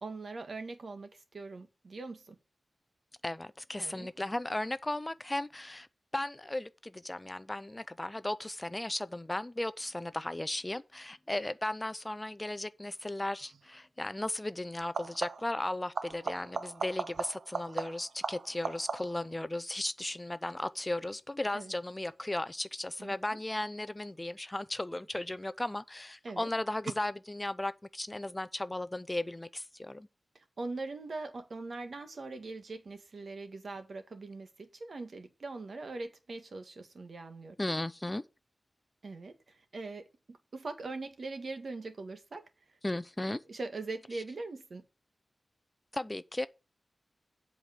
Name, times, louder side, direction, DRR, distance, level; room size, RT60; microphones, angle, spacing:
voice 1, 0.0-2.3 3.8-4.1 21.5-21.7 23.0-23.1 26.2-26.5 30.6-37.6 39.0-42.4 43.5-44.8, right 3 dB, 55° right, 1.6 m, -41 dB
voice 2, 3.2-5.9 6.1-30.1 37.6-38.2 42.8-43.4 45.9-46.5, left 1 dB, 15° left, 0.5 m, -36 dB
sound 1, 13.4-13.6 14.8-15.6 15.9-19.3 24.8-25.3 26.9-27.0, right 5 dB, 90° right, 0.7 m, -38 dB
8.1 x 4.9 x 7.5 m
wide cardioid pair, 135°, 0 cm